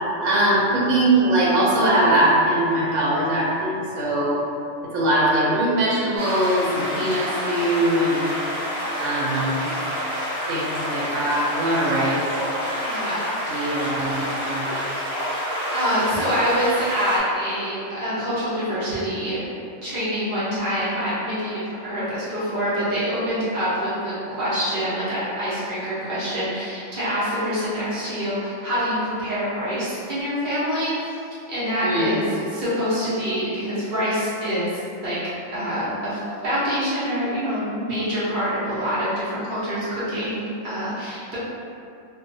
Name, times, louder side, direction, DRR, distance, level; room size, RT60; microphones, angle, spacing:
voice 1, 0.2-4.4 4.9-8.3 9.0-9.7 10.5-12.2 13.5-14.8 31.8-32.2, right 1 dB, 80° right, -6 dB, 1.0 m, -21 dB
sound 1, 6.2-17.2, equal, 25° right, 0.4 m, -28 dB
voice 2, 12.8-13.3 13.7-13.8 15.7-19.4 19.8-31.2 31.5-35.2 35.5-41.4, equal, 45° right, -11 dB, 1.0 m, -26 dB
2.5 x 2.2 x 2.6 m, 2.5 s
omnidirectional pair, 1.3 m